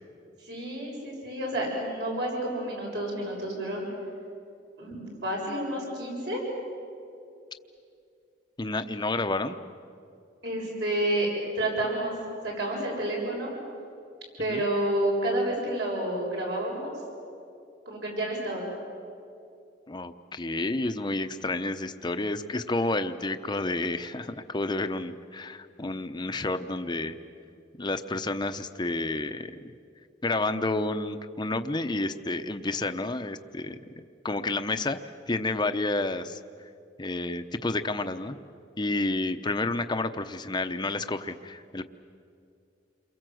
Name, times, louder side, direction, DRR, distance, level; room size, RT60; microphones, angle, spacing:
voice 1, 0.4-3.8 4.8-6.4 10.4-12.1 12.4-13.5 14.4-16.9 17.9-18.6, right 1 dB, 65° right, -2 dB, 7.5 m, -30 dB
voice 2, 8.6-9.6 14.5-14.6 19.9-27.2 27.8-29.7 30.2-33.8 34.2-35.0 35.3-36.4 37.0-38.4 38.8-41.8, left 2 dB, 25° left, 8 dB, 0.8 m, -30 dB
29.0 x 23.0 x 7.8 m, 2.5 s
head